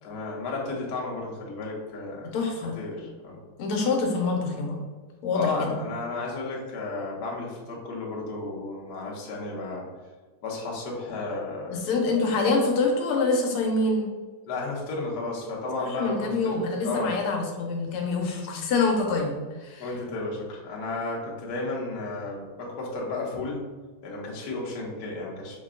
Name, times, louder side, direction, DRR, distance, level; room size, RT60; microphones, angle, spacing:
voice 1, 0.0-2.3 2.8-3.4 5.3-9.8 10.4-11.8 14.5-16.6 16.8-17.1 19.8-23.6 24.0-25.6, left 3 dB, 55° left, -3 dB, 1.3 m, -33 dB
voice 2, 2.3-2.8 3.6-4.8 5.2-5.8 11.7-14.1 15.8-19.9, left 3 dB, 80° left, 0 dB, 1.6 m, -26 dB
5.6 x 2.2 x 3.6 m, 1.4 s
omnidirectional pair, 2.4 m